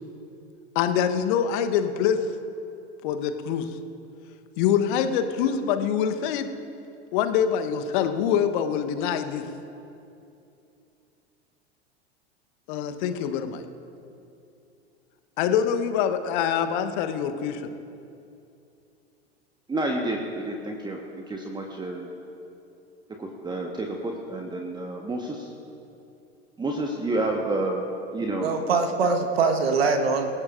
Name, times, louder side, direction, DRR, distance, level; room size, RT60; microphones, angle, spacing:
voice 1, 0.7-2.2 3.0-3.7 4.6-6.5 7.1-9.4 12.7-13.6 15.4-17.7, left 8 dB, 50° left, 8 dB, 1.2 m, -25 dB
voice 2, 19.7-21.0 21.3-22.1 23.2-25.5 26.6-27.8 28.1-28.5, right 2 dB, 15° right, 1 dB, 1.3 m, -29 dB
voice 3, 28.4-30.3, right 4 dB, 65° right, 5 dB, 1.5 m, -23 dB
26.0 x 16.5 x 2.6 m, 2.7 s
figure-of-eight pair, 85°, 33 cm